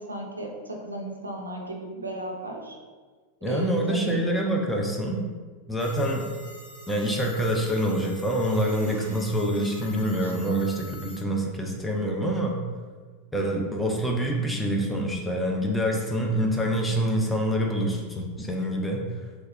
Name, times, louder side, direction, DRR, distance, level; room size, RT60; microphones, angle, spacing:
voice 1, 0.0-2.8 3.5-4.2 10.2-10.3, right 1 dB, 80° right, 0 dB, 0.4 m, -35 dB
voice 2, 3.4-5.2 5.7-6.3 6.9-12.6 13.3-19.1, equal, 5° left, 0 dB, 0.4 m, -26 dB
sound 1, 5.8-11.2, left 1 dB, 85° left, 1.4 m, -45 dB
2.9 x 2.3 x 2.6 m, 1.5 s
figure-of-eight pair, 90°, 0 cm